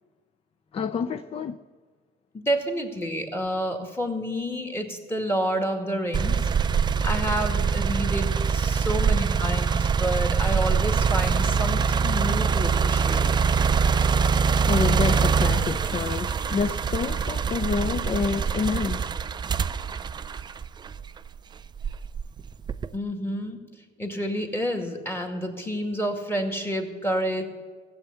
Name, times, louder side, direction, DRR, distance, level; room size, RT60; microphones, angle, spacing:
voice 1, 0.7-1.6 14.6-19.1, left 5 dB, 35° left, 0.5 m, -28 dB
voice 2, 2.3-6.5 7.0-13.2 22.9-23.6 24.0-27.4, equal, 15° left, 2.2 m, -29 dB
sound 1, 6.1-21.2 21.8-23.0, right 6 dB, 25° right, 0.4 m, -24 dB
16.0 x 7.9 x 8.4 m
cardioid pair, 110°, 17 cm